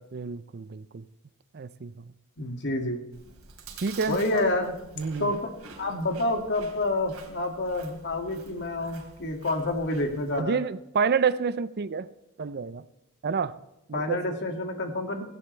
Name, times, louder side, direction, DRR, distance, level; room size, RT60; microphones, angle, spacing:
voice 1, 0.1-1.0 1.5-1.9 3.8-4.4 5.0-5.3 10.4-12.1 12.4-12.8 13.2-13.6 13.9-14.2, right 5 dB, 50° right, 16 dB, 0.5 m, -28 dB
voice 2, 2.4-3.0 4.1-4.7 5.2-5.4 5.8-10.6 13.9-15.2, left 2 dB, 55° left, 4 dB, 2.2 m, -28 dB
Chewing mastication, 3.1-10.4, right 4 dB, 70° right, 3.2 m, -48 dB
17.5 x 16.5 x 3.3 m, 0.90 s
head